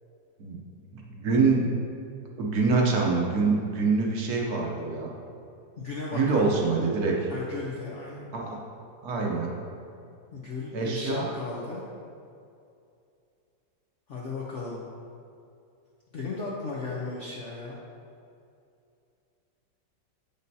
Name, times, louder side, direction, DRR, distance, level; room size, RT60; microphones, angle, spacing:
voice 1, 0.9-1.6 2.4-5.1 6.1-7.3 8.3-8.6 9.0-9.5 10.7-11.3, right 4 dB, 65° right, -1 dB, 1.2 m, -25 dB
voice 2, 5.8-6.5 7.3-8.3 10.3-11.8 14.1-14.8 16.1-17.8, left 3 dB, 55° left, -5 dB, 0.8 m, -35 dB
8.1 x 5.3 x 2.7 m, 2.5 s
omnidirectional pair, 1.9 m